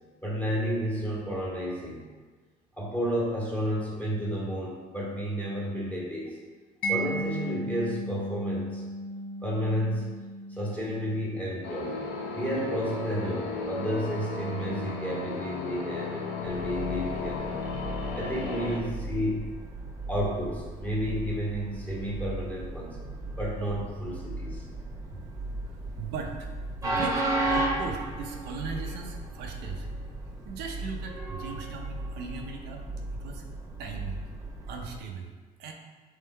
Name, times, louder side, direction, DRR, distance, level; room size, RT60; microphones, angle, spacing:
voice 1, 0.2-2.0 2.8-6.4 6.9-8.8 9.4-10.0 10.5-12.0 12.3-17.7 18.1-19.5 20.1-23.0 23.4-24.7 25.1-25.2, equal, 10° left, -5 dB, 1.4 m, -31 dB
Mallet percussion, 6.8-13.6, right 1 dB, 55° left, 0.5 m, -36 dB
sound 1, 11.6-18.8, left 3 dB, 90° left, 0.7 m, -34 dB
Train, 16.4-35.0, right 2 dB, 20° right, 1.0 m, -35 dB
voice 2, 26.0-26.5 26.8-29.9 30.4-32.9 33.1-33.4 33.8-34.2 34.7-35.3 35.6-35.7, right 5 dB, 85° right, 2 dB, 0.6 m, -38 dB
3.8 x 3.1 x 4.2 m, 1.4 s
cardioid pair, 110°, 17 cm